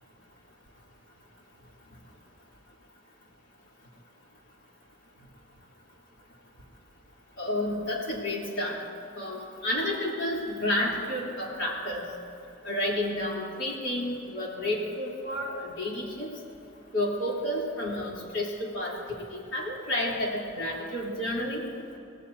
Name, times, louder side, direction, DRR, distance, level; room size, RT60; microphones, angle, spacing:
voice 1, 7.4-8.8 9.2-12.0 12.6-16.3 16.9-21.6, left 1 dB, 80° left, -4 dB, 3.5 m, -30 dB
24.5 x 17.5 x 2.8 m, 2.6 s
head